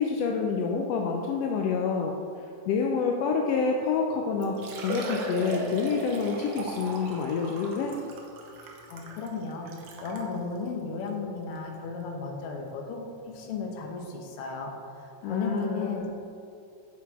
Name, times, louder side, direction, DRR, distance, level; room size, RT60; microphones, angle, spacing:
voice 1, 0.0-2.1 2.7-4.6 4.8-7.9 15.2-16.1, left 5 dB, 80° left, 1 dB, 1.4 m, -27 dB
Liquid, 4.0-4.1 4.4-10.3 11.0-11.1 11.6-11.7 13.3-13.4 13.6-13.7, right 2 dB, 80° right, 1.0 m, -37 dB
voice 2, 8.9-9.7 10.0-16.1, left 4 dB, 65° left, 2 dB, 1.5 m, -35 dB
7.4 x 6.6 x 4.8 m, 2.5 s
omnidirectional pair, 3.5 m